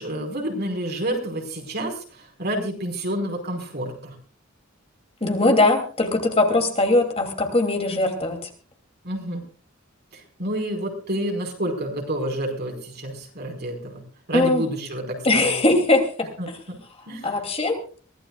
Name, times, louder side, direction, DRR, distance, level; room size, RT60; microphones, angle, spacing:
voice 1, 0.0-4.2 9.0-9.4 10.1-14.0 14.3-15.5 16.4-16.8 17.1-17.3, right 1 dB, 55° right, 3 dB, 4.9 m, -29 dB
voice 2, 5.2-8.5 14.3-14.6 15.2-16.3 17.2-17.8, left 2 dB, 30° left, 4 dB, 2.8 m, -20 dB
23.5 x 16.5 x 2.4 m, 0.40 s
head